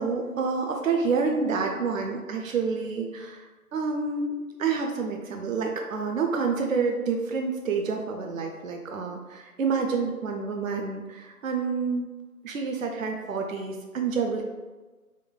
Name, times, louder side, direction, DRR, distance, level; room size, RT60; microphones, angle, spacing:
voice 1, 0.0-4.3 4.6-12.1 12.4-14.4, right 5 dB, 60° right, 2 dB, 0.5 m, -28 dB
3.7 x 2.2 x 3.7 m, 1.3 s
figure-of-eight pair, 150°, 45 cm